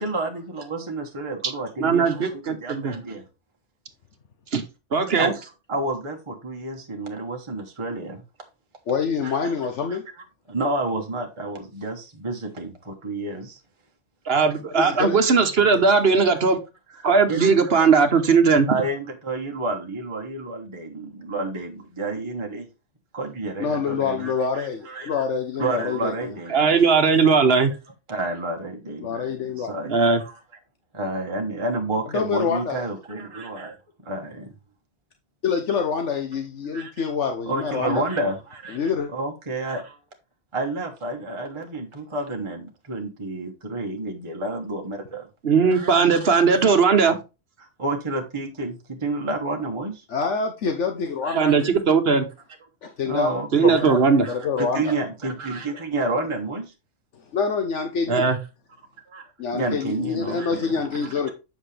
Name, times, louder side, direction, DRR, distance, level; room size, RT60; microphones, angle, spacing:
voice 1, 0.0-3.3 5.2-8.2 9.2-9.5 10.5-13.6 16.9-17.0 17.3-17.7 18.7-22.7 23.1-25.3 25.6-26.8 27.2-27.3 28.1-30.3 30.9-33.8 34.0-34.5 36.7-38.8 39.1-40.0 40.5-45.3 45.7-46.4 47.6-50.0 51.2-51.7 53.1-53.9 54.2-56.7 59.1-59.2 59.5-61.3, right 2 dB, 25° right, 1.2 m, -30 dB
voice 2, 1.8-2.9 4.5-4.6 4.9-5.3 14.3-16.6 17.0-18.7 26.5-27.7 29.9-30.2 45.4-47.2 51.3-52.3 53.5-54.3 58.1-58.4, right 5 dB, 55° right, 1.3 m, -18 dB
voice 3, 8.9-10.0 14.7-15.2 23.6-26.3 29.0-29.7 32.1-32.8 35.4-38.0 38.7-39.1 50.1-51.7 52.8-54.0 54.3-54.9 57.1-58.3 59.4-61.3, left 5 dB, 70° left, 1.2 m, -26 dB
8.1 x 5.9 x 3.3 m
omnidirectional pair, 1.3 m